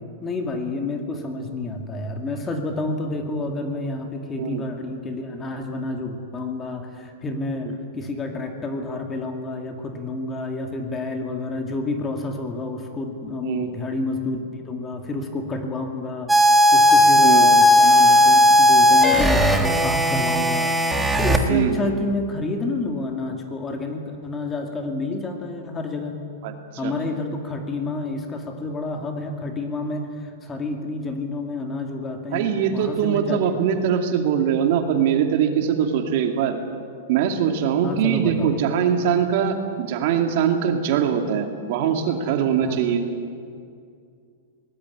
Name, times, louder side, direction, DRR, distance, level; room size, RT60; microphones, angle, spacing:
voice 1, 0.2-20.7 21.2-26.2 26.8-33.6 37.8-38.5 42.6-42.8, left 2 dB, 15° left, 4 dB, 2.2 m, -29 dB
sound 1, 16.3-21.4, left 1 dB, 5° right, 1.5 m, -15 dB
voice 2, 32.3-36.6 37.1-43.0, right 8 dB, 45° right, 5 dB, 2.5 m, -22 dB
23.5 x 19.5 x 9.9 m, 2.3 s
supercardioid pair, 165°, 0 cm